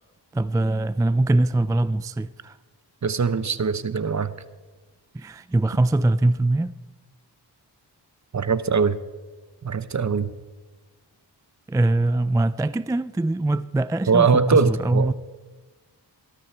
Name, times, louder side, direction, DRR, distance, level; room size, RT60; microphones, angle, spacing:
voice 1, 0.3-2.6 5.1-6.8 11.7-15.1, right 2 dB, 10° right, 0.4 m, -22 dB
voice 2, 3.0-4.3 8.3-9.0 9.6-10.3 14.1-15.1, right 5 dB, 40° right, 0.9 m, -21 dB
18.0 x 13.0 x 4.5 m
cardioid pair, 60°, 42 cm